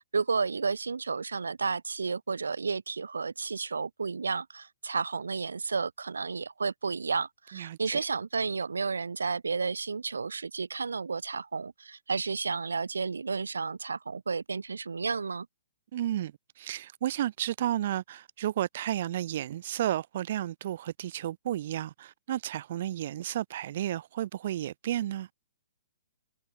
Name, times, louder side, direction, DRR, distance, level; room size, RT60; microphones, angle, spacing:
voice 1, 0.0-15.5, right 4 dB, 70° right, 1.1 m, -32 dB
voice 2, 7.5-8.0 15.9-25.3, right 12 dB, 45° right, 0.8 m, -32 dB
figure-of-eight pair, 120°, 0 cm